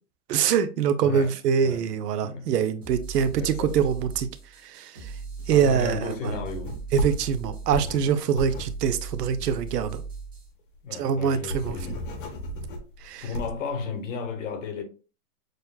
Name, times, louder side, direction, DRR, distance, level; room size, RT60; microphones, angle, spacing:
voice 1, 0.3-4.3 4.7-4.9 5.5-6.4 6.9-10.0 11.0-11.8 13.1-13.2, right 8 dB, 90° right, 0.7 m, -24 dB
voice 2, 1.0-1.9 2.2-2.5 3.4-3.8 5.5-6.8 7.9-8.1 8.4-8.7 10.8-12.1 13.2-14.8, left 5 dB, 55° left, 1.1 m, -34 dB
sound 1, 2.8-10.5, right 4 dB, 15° right, 0.4 m, -38 dB
sound 2, 6.3-10.0 10.4-10.5 10.7-10.8 11.2-13.7, equal, 35° left, 0.6 m, -34 dB
6.3 x 2.2 x 2.2 m
hypercardioid pair, 165°, 46 cm